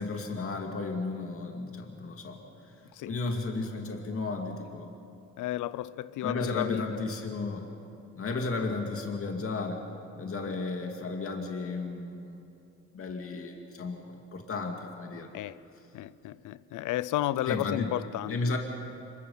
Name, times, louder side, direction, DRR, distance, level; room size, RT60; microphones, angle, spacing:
voice 1, 0.0-2.4 2.7-2.8 3.1-4.9 6.2-7.6 8.1-9.9 10.2-12.5 12.9-15.3 17.4-17.9 18.3-18.6, left 3 dB, 45° left, 2.4 m, -34 dB
voice 2, 5.4-6.8 10.3-10.5 15.3-15.6 15.9-18.6, left 14 dB, 85° left, 0.7 m, -33 dB
27.0 x 23.0 x 5.6 m
cardioid pair, 90°, 30 cm